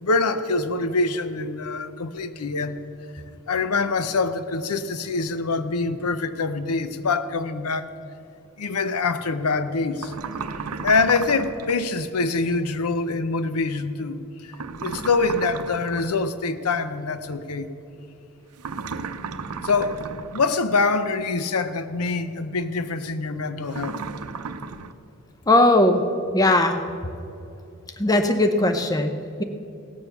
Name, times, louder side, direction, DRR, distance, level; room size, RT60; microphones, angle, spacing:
voice 1, 0.0-2.8 3.5-7.9 8.6-10.2 10.5-17.7 19.6-20.0 20.3-24.0, left 3 dB, 85° left, 12 dB, 0.7 m, -25 dB
sound 1, 10.0-11.8 14.5-16.2 18.6-20.6 23.7-24.9, right 5 dB, 90° right, 0.6 m, -34 dB
voice 2, 25.5-26.0 26.3-26.8 28.0-29.4, left 1 dB, 15° left, 7 dB, 0.6 m, -19 dB
17.5 x 7.1 x 6.8 m, 2.8 s
head